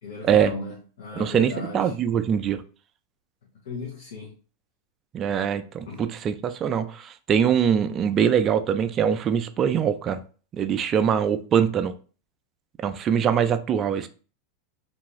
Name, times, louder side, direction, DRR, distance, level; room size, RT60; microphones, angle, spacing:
voice 1, 0.0-2.0 3.6-4.4 5.9-6.2, left 3 dB, 85° left, 0.7 m, -36 dB
voice 2, 1.2-2.6 5.1-10.2 10.5-11.9 12.8-14.1, right 8 dB, 30° right, 0.3 m, -23 dB
2.6 x 2.3 x 3.0 m
supercardioid pair, 125°, 0 cm